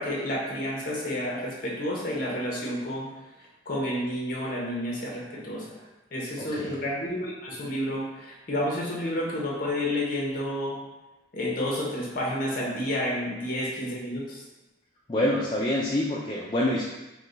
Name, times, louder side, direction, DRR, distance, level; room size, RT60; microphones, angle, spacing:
voice 1, 0.0-3.1 3.7-5.8 6.1-10.8 11.3-14.4, left 1 dB, 50° left, -3 dB, 1.0 m, -30 dB
voice 2, 6.4-6.8 15.1-16.8, left 1 dB, 25° left, -5 dB, 0.4 m, -26 dB
4.6 x 2.3 x 3.9 m, 1.0 s
head